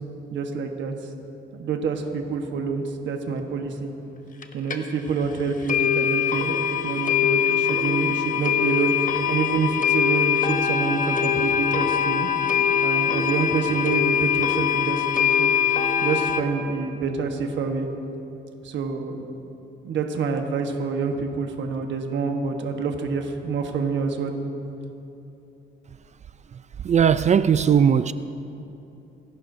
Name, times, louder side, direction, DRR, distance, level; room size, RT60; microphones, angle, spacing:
voice 1, 0.3-0.9 1.5-3.9 4.5-12.3 12.8-15.5 16.0-17.9 18.6-19.4 19.8-24.3, right 5 dB, 70° right, 4 dB, 1.2 m, -27 dB
sound 1, 4.4-4.5 4.7-4.8 5.2-5.3 5.7-16.4, left 8 dB, 40° left, 1.1 m, -22 dB
voice 2, 26.8-28.1, right 7 dB, 35° right, 14 dB, 0.4 m, -18 dB
27.0 x 11.5 x 2.7 m, 2.8 s
cardioid pair, 90°, 20 cm